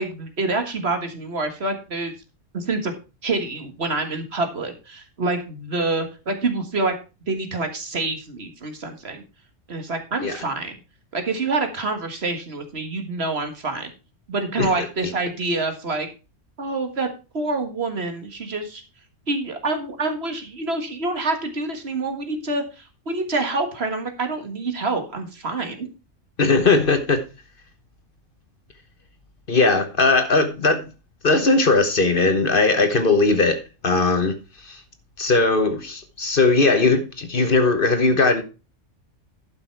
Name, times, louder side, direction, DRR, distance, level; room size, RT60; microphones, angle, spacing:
voice 1, 0.0-2.1 2.5-2.9 3.2-6.9 7.3-9.2 9.7-10.8 11.1-13.9 14.3-16.1 16.6-17.1 17.3-18.8 19.3-25.9, right 3 dB, 55° right, 6 dB, 1.9 m, -27 dB
voice 2, 26.4-27.2 29.5-30.8 31.2-34.3 34.6-34.8 35.2-38.4, left 3 dB, 45° left, 8 dB, 1.3 m, -19 dB
11.5 x 5.9 x 4.6 m, 0.31 s
omnidirectional pair, 1.3 m